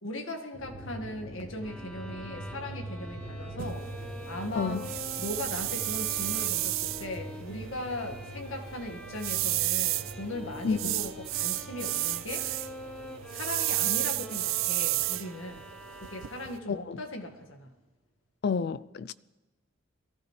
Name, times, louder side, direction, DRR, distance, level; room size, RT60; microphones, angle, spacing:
voice 1, 0.0-3.8 4.2-4.8 5.2-12.5 13.3-15.7 16.0-17.7, left 1 dB, 70° left, 1.8 m, -38 dB
sound 1, 0.5-17.3, right 1 dB, 35° left, 5.2 m, -44 dB
sound 2, 1.6-16.7, left 1 dB, 5° left, 1.2 m, -47 dB
sound 3, 3.6-16.6, right 17 dB, 70° right, 0.4 m, -33 dB
voice 2, 4.6-4.9 10.6-11.0 16.7-17.0 18.4-19.1, left 5 dB, 50° left, 0.4 m, -30 dB
22.5 x 15.0 x 3.3 m
head